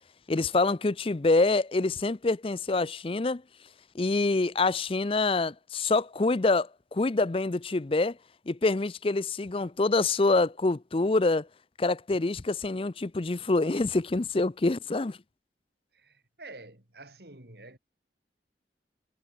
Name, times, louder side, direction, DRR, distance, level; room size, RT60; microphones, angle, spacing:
voice 1, 0.3-3.4 3.9-8.2 8.5-11.5 11.8-15.2, left 3 dB, 30° left, 0.5 m, -26 dB
voice 2, 15.9-17.8, right 2 dB, 65° right, 3.7 m, -48 dB
head